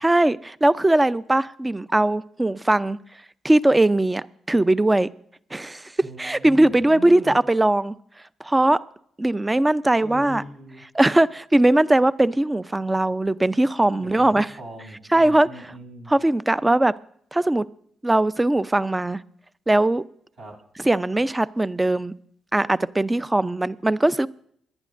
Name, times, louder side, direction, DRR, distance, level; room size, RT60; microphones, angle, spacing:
voice 1, 0.0-3.0 3.4-5.1 5.5-5.9 6.2-8.0 8.4-8.8 9.2-10.4 10.9-14.5 15.1-15.5 16.1-16.9 17.3-17.7 18.0-19.2 19.7-20.0 20.8-22.2 22.5-24.3, right 1 dB, 15° right, 17 dB, 0.5 m, -20 dB
voice 2, 6.0-7.4 10.0-10.8 14.0-16.1 20.4-20.5, equal, 70° right, -3 dB, 7.1 m, -40 dB
26.5 x 11.0 x 2.6 m, 0.66 s
hypercardioid pair, 45°, 0 cm